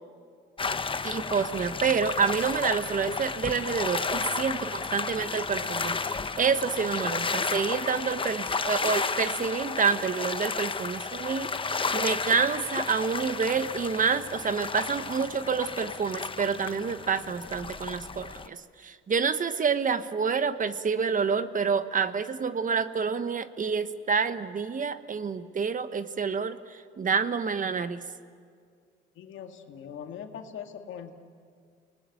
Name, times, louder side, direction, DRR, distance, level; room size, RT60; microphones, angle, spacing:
sound 1, 0.6-18.5, left 4 dB, 25° left, 1.0 m, -32 dB
voice 1, 1.0-11.5 11.9-26.6 27.0-28.0, right 5 dB, 40° right, 12 dB, 1.2 m, -28 dB
voice 2, 29.2-31.1, left 8 dB, 75° left, 5 dB, 2.2 m, -41 dB
29.0 x 20.0 x 9.3 m, 2.1 s
cardioid pair, 90°, 20 cm